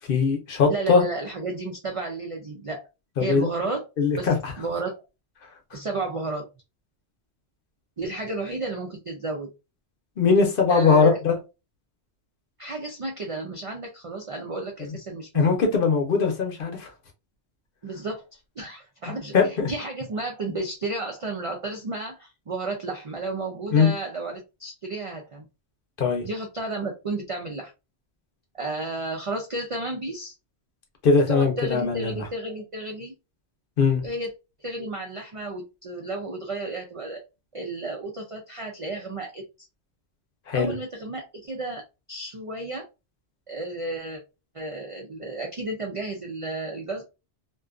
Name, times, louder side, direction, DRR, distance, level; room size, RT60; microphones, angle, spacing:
voice 1, 0.1-1.0 3.2-3.5 4.0-4.5 10.2-11.4 14.8-14.9 15.3-16.9 19.3-19.7 23.7-23.9 26.0-26.2 31.0-32.3 33.8-34.0 40.5-40.7, left 5 dB, 60° left, 0.8 m, -20 dB
voice 2, 0.7-2.9 3.2-3.9 4.2-4.3 4.6-5.0 5.7-6.5 8.0-9.5 10.7-11.2 12.6-15.6 17.8-25.5 26.2-27.7 28.5-30.3 31.3-33.1 34.0-34.3 34.6-37.2 37.5-39.4 40.5-41.8 42.1-42.9 43.5-44.2 44.5-47.0, right 2 dB, 55° right, 0.3 m, -32 dB
2.5 x 2.2 x 2.3 m
omnidirectional pair, 1.1 m